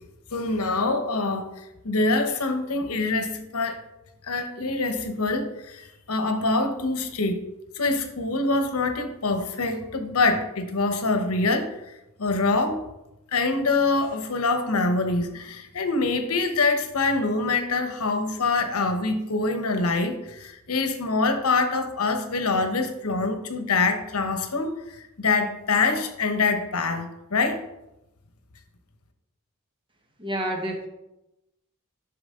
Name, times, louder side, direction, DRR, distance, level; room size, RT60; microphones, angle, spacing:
voice 1, 0.3-1.5 1.8-3.8 4.2-7.4 7.7-11.8 12.2-12.8 13.3-27.6, left 3 dB, 80° left, 8 dB, 1.0 m, -25 dB
voice 2, 30.2-30.9, right 1 dB, 25° right, 2 dB, 1.1 m, -29 dB
8.9 x 6.1 x 3.7 m, 0.92 s
head